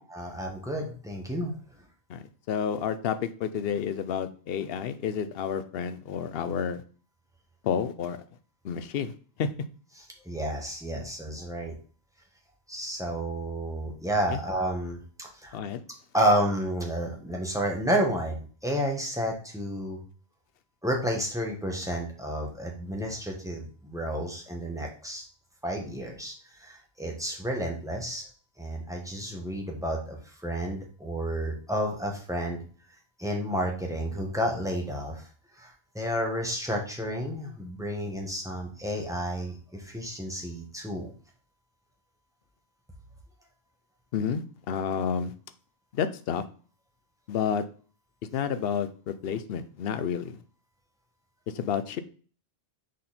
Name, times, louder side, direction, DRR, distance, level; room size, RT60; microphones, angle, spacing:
voice 1, 0.0-1.5 10.0-11.7 12.7-15.6 16.1-20.0 20.8-25.2 25.6-26.3 26.6-28.2 28.6-30.2 30.4-32.6 33.2-35.2 35.6-41.1, right 1 dB, 5° right, 0 dB, 1.5 m, -31 dB
voice 2, 2.1-6.8 7.6-8.2 8.6-9.1 9.4-9.5 14.3-14.4 15.5-15.8 44.1-45.3 45.9-46.4 47.3-47.6 48.3-50.4 51.5-52.0, left 7 dB, 65° left, 11 dB, 0.8 m, -30 dB
6.2 x 4.4 x 4.2 m, 0.40 s
omnidirectional pair, 1.1 m